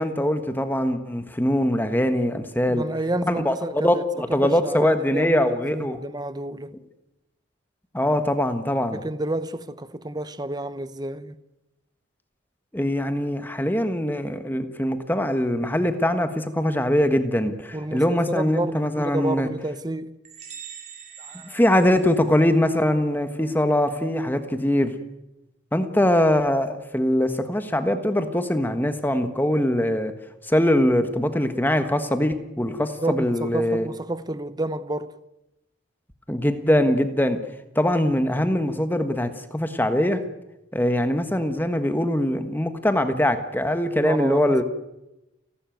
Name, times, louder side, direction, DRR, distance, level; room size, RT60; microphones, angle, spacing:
voice 1, 0.0-2.8 3.3-6.0 7.9-9.0 12.7-19.5 21.5-24.9 25.7-30.1 30.4-33.9 36.3-37.4 37.7-40.2 40.7-44.6, left 1 dB, 10° left, 1.4 m, -22 dB
voice 2, 2.7-4.0 4.3-5.4 5.7-6.8 8.9-11.4 17.7-20.2 21.2-21.6 32.7-35.1 44.0-44.6, right 1 dB, 20° right, 0.9 m, -30 dB
sound 1, 20.2-22.8, right 7 dB, 35° right, 4.4 m, -43 dB
30.0 x 12.5 x 9.3 m
head